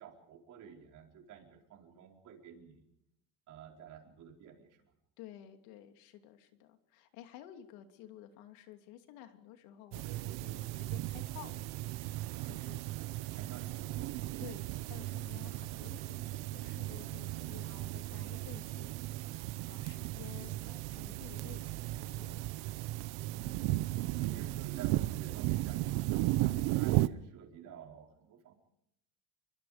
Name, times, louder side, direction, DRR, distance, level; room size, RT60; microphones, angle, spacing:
voice 1, 0.0-2.8 3.5-4.8 13.1-14.3 24.1-28.5, right 8 dB, 45° right, 2 dB, 4.7 m, -52 dB
voice 2, 5.2-11.7 12.4-13.2 14.4-19.4 19.7-22.5 24.2-24.3, left 12 dB, 85° left, 6 dB, 2.9 m, -53 dB
sound 1, 9.9-27.1, right 17 dB, 60° right, 0.9 m, -36 dB
29.0 x 23.5 x 5.1 m, 0.78 s
cardioid pair, 175°, 43 cm